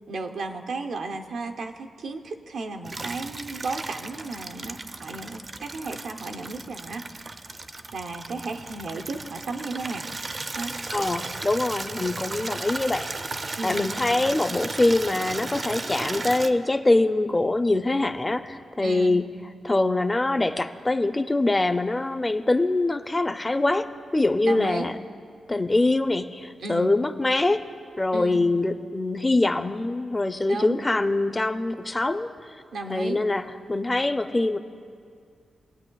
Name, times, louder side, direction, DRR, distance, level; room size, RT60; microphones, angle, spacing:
voice 1, 0.1-7.0 7.9-10.1 10.6-10.7 13.6-13.9 18.8-19.2 24.5-24.9 26.6-26.9 28.1-28.5 30.5-30.8 32.7-33.2, right 3 dB, 75° right, 3 dB, 0.6 m, -34 dB
Water tap faucet / Liquid, 2.8-16.5, right 3 dB, 35° right, 0.4 m, -35 dB
voice 2, 10.9-13.1 13.6-19.2 19.6-24.9 25.5-27.7 28.0-32.3 32.9-33.4 33.7-34.6, left 2 dB, 20° left, 9 dB, 0.4 m, -24 dB
20.5 x 8.5 x 2.3 m, 2.2 s
cardioid pair, 85°, 0 cm